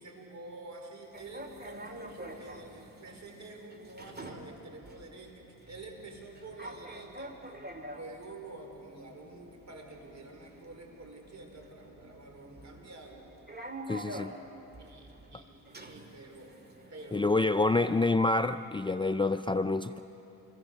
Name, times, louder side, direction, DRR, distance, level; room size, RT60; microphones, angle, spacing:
voice 1, 0.0-7.4 7.9-13.3 14.0-14.5 14.8-16.6 16.9-17.6 19.9-20.0, right 2 dB, 50° right, 3 dB, 4.9 m, -48 dB
sound 1, 1.1-18.6, right 1 dB, 25° right, 2.2 m, -48 dB
voice 2, 13.9-14.3 17.1-20.0, left 2 dB, 15° left, 9 dB, 0.5 m, -27 dB
27.0 x 23.0 x 6.8 m, 2.8 s
cardioid pair, 70°, 37 cm